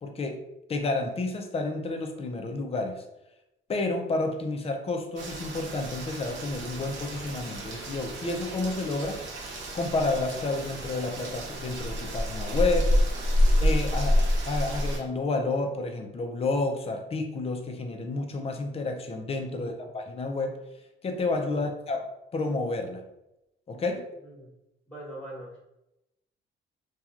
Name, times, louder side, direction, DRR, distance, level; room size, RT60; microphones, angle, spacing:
voice 1, 0.0-0.4 0.7-3.0 3.7-9.2 9.7-13.0 13.6-20.6 21.0-22.0 22.3-23.0 23.7-24.1, left 3 dB, 30° left, 5 dB, 0.5 m, -30 dB
Rain, 5.2-15.0, equal, 65° right, 0.9 m, -28 dB
voice 2, 24.9-25.6, right 1 dB, 5° left, -5 dB, 1.1 m, -42 dB
2.8 x 2.3 x 2.4 m, 0.89 s
cardioid pair, 90°, 20 cm